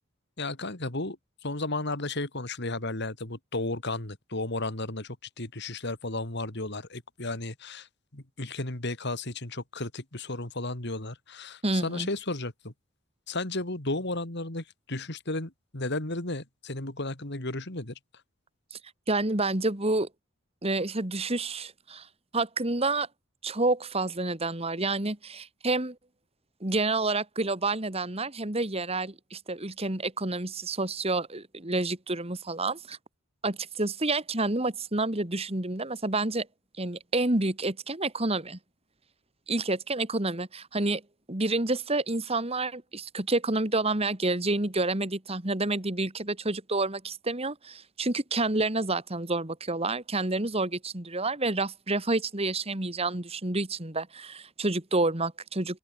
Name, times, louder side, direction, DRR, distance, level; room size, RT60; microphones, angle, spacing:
voice 1, 0.4-1.2 1.4-7.9 8.1-12.7 13.3-17.9, left 2 dB, 55° left, 3.0 m, -34 dB
voice 2, 11.6-12.1 19.1-20.1 20.6-22.1 22.3-23.1 23.4-26.0 26.6-33.0 33.4-36.5 36.8-38.6 39.5-41.0 41.3-55.8, right 2 dB, 30° right, 2.2 m, -29 dB
open air
head